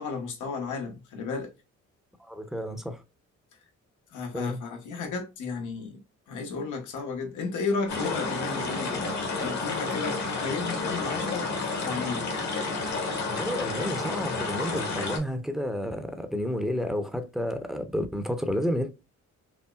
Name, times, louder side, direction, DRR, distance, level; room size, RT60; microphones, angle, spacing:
voice 1, 0.0-1.5 4.1-6.0 6.3-9.1 9.4-11.5 11.8-12.3, left 4 dB, 80° left, 1.2 m, -33 dB
voice 2, 2.2-3.0 4.3-4.6 13.3-18.9, equal, ahead, 0.7 m, -31 dB
sound 1, 7.9-15.2, left 3 dB, 65° left, 1.8 m, -30 dB
5.6 x 2.0 x 2.3 m
cardioid pair, 90°, 30 cm